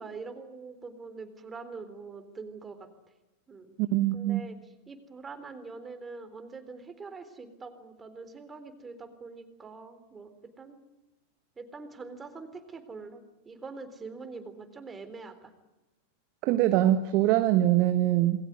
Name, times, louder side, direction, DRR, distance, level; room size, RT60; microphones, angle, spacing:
voice 1, 0.0-2.9 3.5-3.8 4.1-4.6 4.9-10.8 11.6-15.5 16.4-16.6, right 4 dB, 15° right, 9 dB, 3.7 m, -44 dB
voice 2, 3.8-4.4 16.4-18.5, right 13 dB, 40° right, 9 dB, 1.3 m, -23 dB
28.0 x 20.5 x 9.7 m, 1.1 s
figure-of-eight pair, 90°, 0 cm